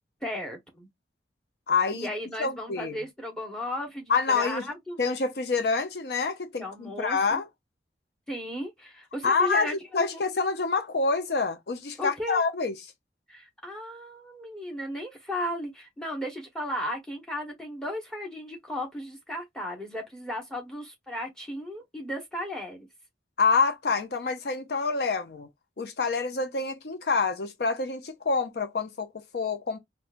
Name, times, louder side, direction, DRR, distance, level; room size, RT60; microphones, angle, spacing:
voice 1, 0.2-0.9 1.9-5.0 6.6-7.4 8.3-10.2 12.0-12.4 13.3-22.9, left 1 dB, 5° left, 1.2 m, -35 dB
voice 2, 1.7-2.1 2.4-2.9 4.1-4.6 5.0-7.5 9.2-9.7 9.9-12.7 23.4-25.5 25.8-29.8, left 4 dB, 65° left, 0.5 m, -27 dB
4.2 x 2.3 x 2.4 m
head